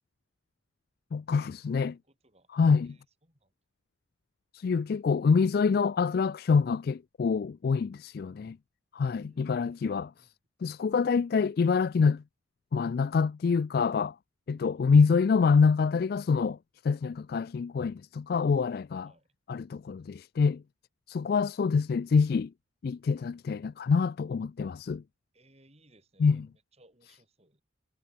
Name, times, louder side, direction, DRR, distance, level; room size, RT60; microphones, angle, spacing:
voice 1, 1.1-2.0 2.5-3.0 4.5-8.6 8.9-10.1 10.6-12.2 12.7-14.1 14.5-16.6 16.8-19.1 19.5-20.6 21.1-22.5 22.8-25.0 26.2-26.5, left 5 dB, 50° left, 0.3 m, -26 dB
voice 2, 1.9-2.5 2.8-3.5 9.1-10.3 19.0-19.3 25.3-27.6, right 1 dB, 30° right, 6.1 m, -64 dB
head